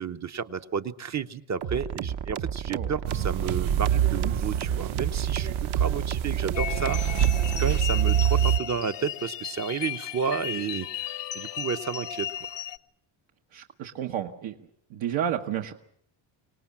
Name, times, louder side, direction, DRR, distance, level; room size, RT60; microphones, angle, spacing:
voice 1, 0.0-12.3, right 6 dB, 35° right, 9 dB, 0.9 m, -32 dB
sound 1, 1.6-7.6, right 8 dB, 55° right, 1.2 m, -33 dB
sound 2, 3.0-8.6, right 10 dB, 90° right, 1.0 m, -25 dB
sound 3, 6.5-12.8, left 10 dB, 60° left, 1.0 m, -35 dB
voice 2, 13.5-14.6 14.9-15.7, right 9 dB, 75° right, 3 dB, 1.5 m, -31 dB
25.5 x 19.0 x 7.4 m, 0.67 s
cardioid pair, 145°, 47 cm